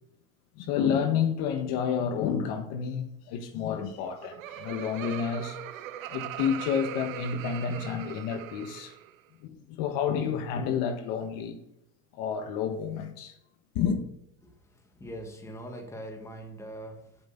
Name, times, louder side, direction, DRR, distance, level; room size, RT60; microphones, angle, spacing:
voice 1, 0.6-5.6 6.1-8.9 9.4-11.6 12.1-13.4 13.7-14.0, left 7 dB, 55° left, 1.5 m, -30 dB
Laughter, 3.9-9.1, right 12 dB, 90° right, 0.9 m, -40 dB
voice 2, 14.4-17.3, equal, 5° left, 1.7 m, -42 dB
8.3 x 7.8 x 6.7 m
supercardioid pair, 135°, 40 cm